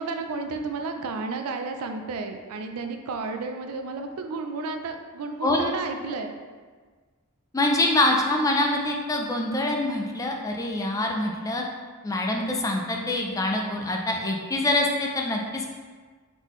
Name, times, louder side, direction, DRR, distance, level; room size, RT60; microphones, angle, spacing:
voice 1, 0.0-6.3, right 3 dB, 75° right, 5 dB, 0.4 m, -32 dB
voice 2, 7.5-11.6 12.0-15.7, left 1 dB, 15° left, 1 dB, 0.4 m, -25 dB
4.0 x 3.7 x 3.0 m, 1.5 s
head